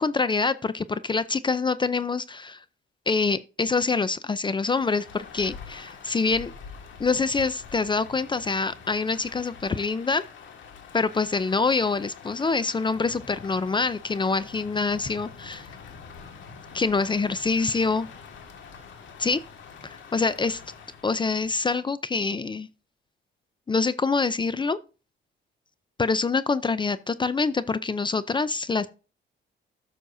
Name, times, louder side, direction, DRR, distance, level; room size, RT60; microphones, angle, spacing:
voice 1, 0.0-2.6 3.1-6.5 7.0-10.2 10.9-15.7 16.7-18.1 19.2-19.4 19.8-20.6 21.0-22.7 23.7-24.8 26.0-28.9, left 4 dB, 25° left, 0.5 m, -25 dB
Rain, 4.7-21.7, left 6 dB, 75° left, 1.9 m, -45 dB
12.5 x 6.3 x 2.7 m
cardioid pair, 90°, 20 cm